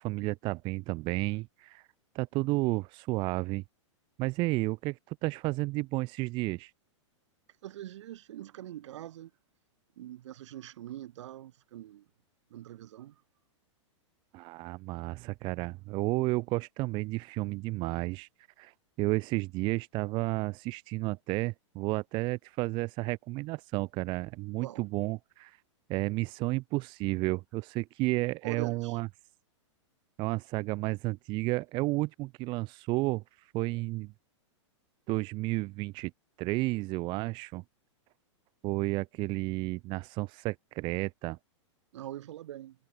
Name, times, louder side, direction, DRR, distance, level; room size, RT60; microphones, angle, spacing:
voice 1, 0.0-1.8 2.1-3.6 4.2-6.7 14.3-18.3 18.6-18.7 19.0-25.6 25.9-29.1 30.2-34.1 35.1-36.1 36.4-37.6 38.6-41.4, right 22 dB, 30° right, 0.4 m, -32 dB
voice 2, 7.6-9.3 10.0-12.1 12.5-13.2 24.6-24.9 28.4-29.0 41.9-42.8, right 13 dB, 70° right, 7.0 m, -43 dB
hypercardioid pair, 130°, 16 cm